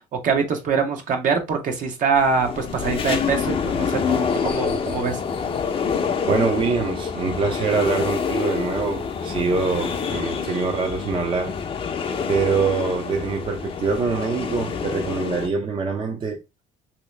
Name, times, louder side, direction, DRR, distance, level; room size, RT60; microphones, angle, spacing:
voice 1, 0.2-5.2, right 5 dB, 55° right, 1.0 m, -23 dB
sound 1, 2.2-15.5, left 6 dB, 35° left, 0.6 m, -27 dB
voice 2, 6.2-11.5 12.3-16.4, right 4 dB, 35° right, 0.6 m, -24 dB
3.0 x 2.8 x 3.2 m
cardioid pair, 100°, 16 cm